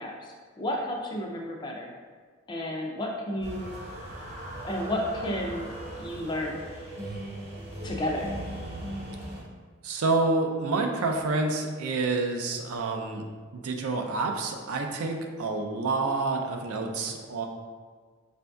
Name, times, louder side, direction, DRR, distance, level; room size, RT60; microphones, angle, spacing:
voice 1, 0.0-1.9 2.5-3.8 4.2-4.3 4.6-5.7 6.0-6.6 7.8-8.3, left 1 dB, 20° left, 0 dB, 0.3 m, -32 dB
sound 1, 3.4-9.4, right 1 dB, 45° right, 0.8 m, -38 dB
voice 2, 9.8-13.3 13.5-17.5, right 3 dB, 80° right, 3 dB, 0.4 m, -28 dB
5.2 x 2.6 x 2.2 m, 1.6 s
head